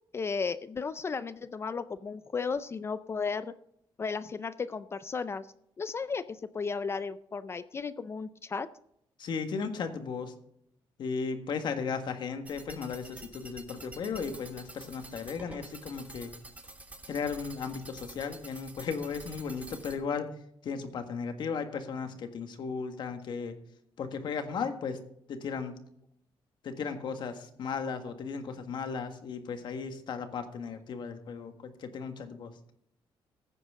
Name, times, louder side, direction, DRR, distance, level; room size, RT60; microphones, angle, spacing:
voice 1, 0.1-3.5 4.0-5.5 5.8-8.7, left 5 dB, 30° left, 14 dB, 0.4 m, -34 dB
voice 2, 9.2-10.3 11.0-16.3 17.1-20.3 20.6-23.6 24.0-25.0 25.3-25.7 26.6-32.5, left 5 dB, 55° left, 7 dB, 1.6 m, -35 dB
sound 1, 12.5-20.0, right 2 dB, 15° right, 1.5 m, -48 dB
15.5 x 9.3 x 3.7 m, 0.72 s
cardioid pair, 150°, 9 cm